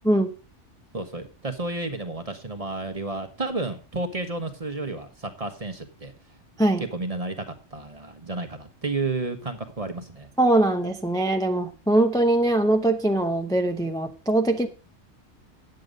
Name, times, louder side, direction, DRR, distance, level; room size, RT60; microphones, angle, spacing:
voice 1, 0.9-6.1 6.9-10.3, right 2 dB, 30° right, 8 dB, 1.2 m, -31 dB
voice 2, 10.4-14.7, right 1 dB, 5° left, 4 dB, 0.7 m, -22 dB
9.6 x 7.8 x 5.2 m, 0.34 s
omnidirectional pair, 1.3 m